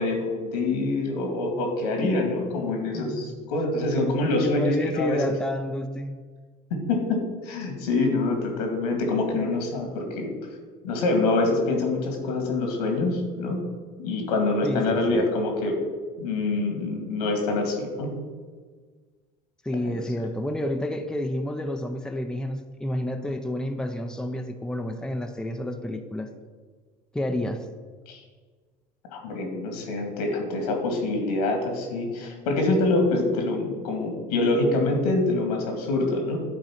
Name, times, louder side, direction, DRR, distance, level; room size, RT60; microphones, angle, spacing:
voice 1, 0.0-5.3 6.9-10.3 10.8-13.6 14.0-15.8 16.2-18.1 19.9-20.0 28.1-28.2 29.1-36.4, left 2 dB, 85° left, 3 dB, 2.1 m, -25 dB
voice 2, 2.9-3.3 4.3-6.2 14.6-15.3 19.6-26.3 27.1-27.6, left 1 dB, 5° left, 5 dB, 0.7 m, -30 dB
10.5 x 4.0 x 5.8 m, 1.5 s
hypercardioid pair, 85°, 19 cm